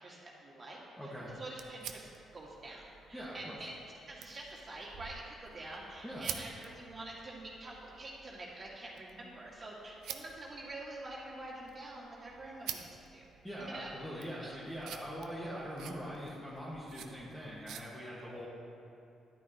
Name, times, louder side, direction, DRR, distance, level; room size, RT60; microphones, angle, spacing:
voice 1, 0.0-3.7 4.1-13.3 13.6-14.6, right 2 dB, 35° right, -5 dB, 2.1 m, -47 dB
voice 2, 1.0-1.3 3.1-3.6 6.0-6.3 13.4-18.5, equal, 5° left, -8 dB, 1.5 m, -42 dB
sound 1, 1.1-17.8, right 9 dB, 85° right, 0.5 m, -50 dB
11.0 x 9.3 x 2.9 m, 2.7 s
cardioid pair, 90°, 0 cm